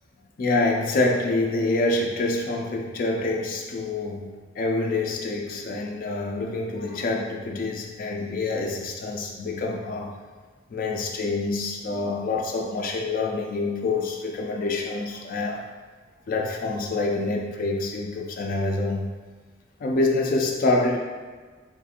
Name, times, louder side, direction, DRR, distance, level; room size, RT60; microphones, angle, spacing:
voice 1, 0.4-10.1 10.7-15.6 16.3-19.1 19.8-21.0, left 2 dB, 45° left, 0 dB, 0.3 m, -26 dB
3.8 x 2.4 x 2.8 m, 1.5 s
head